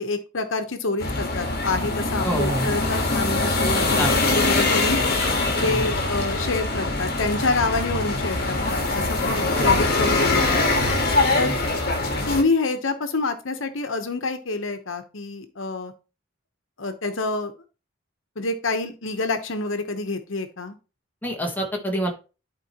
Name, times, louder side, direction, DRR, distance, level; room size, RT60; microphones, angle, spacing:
voice 1, 0.0-4.0 4.3-5.0 5.6-10.6 11.3-11.5 12.3-15.9 16.8-17.5 18.4-20.8, left 3 dB, 75° left, 8 dB, 1.0 m, -27 dB
sound 1, 1.0-12.4, left 2 dB, 50° left, 1.5 m, -23 dB
voice 2, 2.2-2.7 3.8-4.3 5.6-5.9 9.5-9.7 11.3-11.6 21.2-22.1, equal, 10° left, 2 dB, 1.2 m, -27 dB
11.5 x 4.5 x 3.0 m, 0.33 s
head